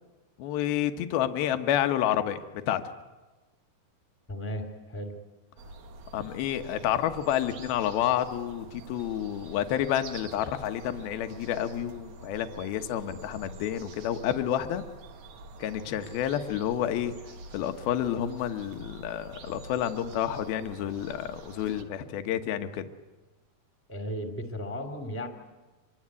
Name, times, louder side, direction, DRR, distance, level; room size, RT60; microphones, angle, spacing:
voice 1, 0.4-2.8 6.1-14.8 15.6-17.2 17.5-22.9, left 11 dB, 80° left, 8 dB, 3.0 m, -29 dB
voice 2, 4.3-5.2 23.9-25.3, equal, 5° left, 6 dB, 1.7 m, -35 dB
sound 1, 5.6-21.8, right 2 dB, 60° right, 2.7 m, -47 dB
25.0 x 24.0 x 9.7 m, 1.2 s
omnidirectional pair, 4.3 m